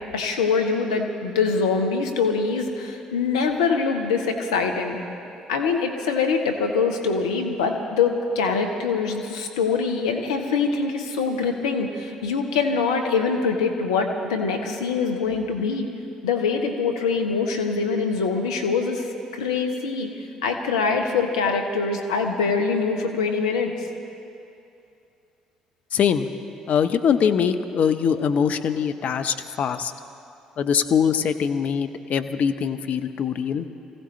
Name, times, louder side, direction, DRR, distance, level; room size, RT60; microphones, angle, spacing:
voice 1, 0.1-5.0 5.5-15.8 16.2-19.1 19.3-20.1 20.4-23.7, left 5 dB, 80° left, 5 dB, 1.1 m, -24 dB
voice 2, 25.9-26.3 26.7-29.9 30.6-33.7, left 7 dB, 55° left, 8 dB, 0.7 m, -22 dB
25.5 x 16.0 x 3.3 m, 2.6 s
figure-of-eight pair, 50°, 3 cm